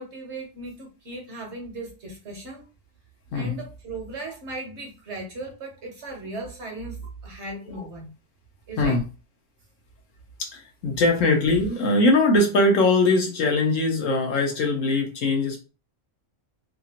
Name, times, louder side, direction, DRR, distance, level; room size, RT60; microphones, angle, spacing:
voice 1, 0.0-2.6 3.3-8.1 8.7-9.0, right 2 dB, 55° right, 1 dB, 1.0 m, -37 dB
voice 2, 10.4-15.6, left 2 dB, 65° left, 2 dB, 1.0 m, -21 dB
2.9 x 2.4 x 2.8 m, 0.32 s
omnidirectional pair, 1.6 m